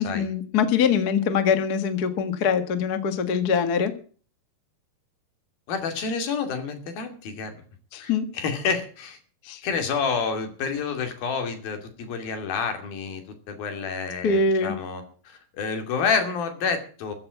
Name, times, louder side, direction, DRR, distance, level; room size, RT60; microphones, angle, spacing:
voice 1, 0.0-3.9 7.9-8.3 9.4-9.6 14.2-14.7, left 6 dB, 50° left, 9 dB, 1.1 m, -23 dB
voice 2, 5.7-7.5 8.0-9.2 9.6-13.2 13.5-17.1, left 5 dB, 70° left, 7 dB, 4.3 m, -29 dB
14.5 x 8.2 x 8.4 m, 0.41 s
omnidirectional pair, 4.4 m